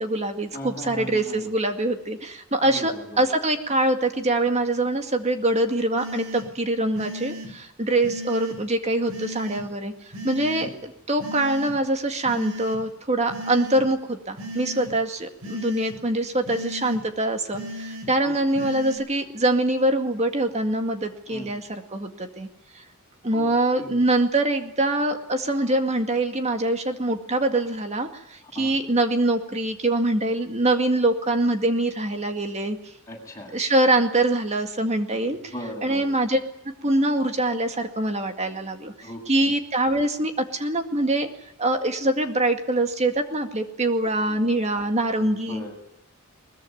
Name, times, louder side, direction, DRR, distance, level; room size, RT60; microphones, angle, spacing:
voice 1, 0.0-22.5 22.7-22.8 23.2-32.8 33.5-35.5 35.8-36.4 36.8-41.3 41.6-45.6, right 1 dB, 30° right, 6 dB, 2.0 m, -24 dB
voice 2, 0.5-1.5 2.6-3.3 10.4-10.7 18.2-18.7 21.3-21.5 23.3-23.5 23.7-24.0 28.5-28.7 33.1-33.5 35.2-36.1 39.0-39.5 44.3-44.4 45.2-45.7, equal, 15° left, -1 dB, 7.9 m, -38 dB
sound 1, 6.0-6.5 7.0-7.5 8.0-8.6 9.1-9.6 10.1-10.7 11.2-11.7 12.3-12.8 13.3-13.8 14.4-14.9 15.4-16.0 16.5-17.0 17.5-18.1 18.6-19.0, equal, 70° right, 7.2 m, -36 dB
22.0 x 21.0 x 9.2 m, 0.79 s
head